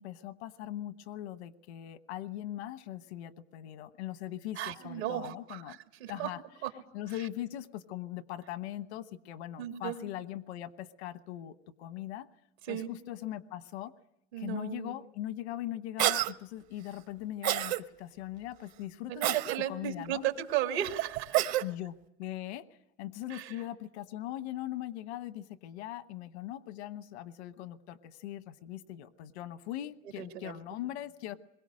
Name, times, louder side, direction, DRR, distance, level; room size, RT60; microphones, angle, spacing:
voice 1, 0.0-5.8 6.1-6.4 6.9-12.3 12.7-13.9 14.4-19.3 19.7-20.2 21.6-22.7 23.0-31.4, left 13 dB, 85° left, 12 dB, 1.2 m, -40 dB
voice 2, 4.6-6.3 6.6-6.7 9.6-10.0 12.6-12.9 14.3-14.9 19.1-21.6 23.3-23.5 30.2-30.5, right 12 dB, 85° right, 4 dB, 2.6 m, -34 dB
Cough, 16.0-16.3 17.4-17.8 19.2-19.6 21.3-21.7, right 14 dB, 55° right, 1.0 m, -28 dB
27.5 x 22.5 x 6.3 m, 0.83 s
supercardioid pair, 125°, 32 cm